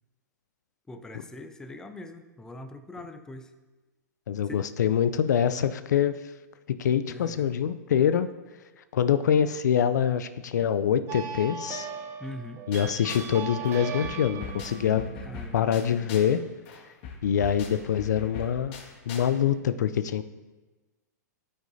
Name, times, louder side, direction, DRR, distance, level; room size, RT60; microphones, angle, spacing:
voice 1, 0.9-3.5 4.4-4.6 7.1-7.5 12.2-12.6 15.2-15.7, left 1 dB, 5° left, 7 dB, 0.5 m, -42 dB
voice 2, 4.3-6.1 6.7-8.3 8.9-11.9 12.7-15.1 15.5-16.4 17.2-18.8 19.1-20.2, left 9 dB, 70° left, 12 dB, 0.4 m, -25 dB
sound 1, 11.1-16.2, right 7 dB, 25° right, 0.8 m, -39 dB
sound 2, 12.7-13.4 13.6-16.4 16.6-19.3, left 4 dB, 40° left, 1.7 m, -41 dB
13.0 x 5.2 x 2.7 m, 1.2 s
hypercardioid pair, 120°, 10 cm